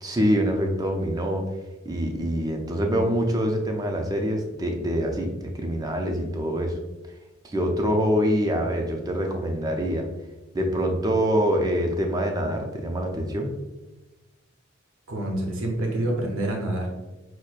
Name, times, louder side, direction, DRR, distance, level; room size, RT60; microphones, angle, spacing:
voice 1, 0.0-1.4 1.8-6.7 7.4-10.1 10.5-13.5, equal, 20° right, 3 dB, 0.4 m, -25 dB
voice 2, 15.1-16.9, right 1 dB, 85° right, 0 dB, 0.7 m, -27 dB
6.0 x 2.1 x 2.4 m, 1.1 s
head